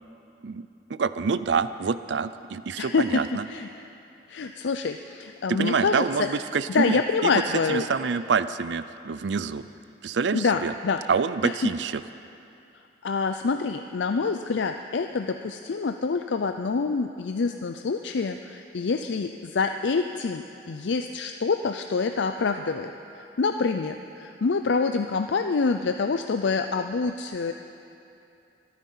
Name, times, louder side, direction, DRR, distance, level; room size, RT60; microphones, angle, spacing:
voice 1, 0.4-3.5 5.5-7.4 7.7-9.7 10.0-10.7 11.1-12.0, right 5 dB, 75° right, 14 dB, 0.5 m, -27 dB
voice 2, 2.8-3.2 3.5-3.7 4.3-6.3 6.7-7.8 10.3-11.0 11.4-11.7 13.0-22.9 23.4-27.5, left 4 dB, 75° left, 7 dB, 0.5 m, -26 dB
24.5 x 9.5 x 5.6 m, 2.7 s
head